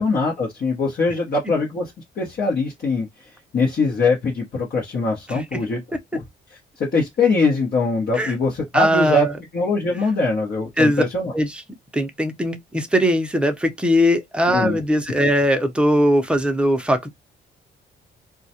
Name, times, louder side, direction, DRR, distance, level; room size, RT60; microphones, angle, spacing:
voice 1, 0.0-5.8 6.1-6.2 6.5-9.3 9.5-11.3 14.5-14.8, left 3 dB, 50° left, 0.9 m, -22 dB
voice 2, 5.3-5.6 8.1-8.3 8.7-9.3 10.8-11.0 11.3-11.6 11.9-17.1, equal, 5° right, 0.6 m, -20 dB
2.3 x 2.1 x 2.7 m
cardioid pair, 90°, 20 cm